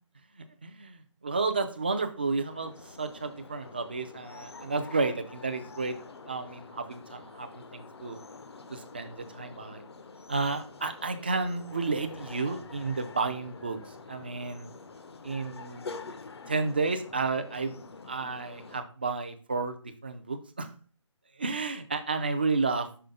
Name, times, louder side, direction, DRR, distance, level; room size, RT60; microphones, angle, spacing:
voice 1, 0.3-6.0 6.3-8.2 8.7-9.8 10.3-14.7 15.2-15.9 16.5-17.8 18.1-20.7 21.4-22.9, right 4 dB, 20° right, 8 dB, 0.3 m, -32 dB
sound 1, 2.5-18.8, left 4 dB, 55° left, 0.6 m, -47 dB
5.5 x 4.9 x 3.6 m, 0.39 s
figure-of-eight pair, 160°, 16 cm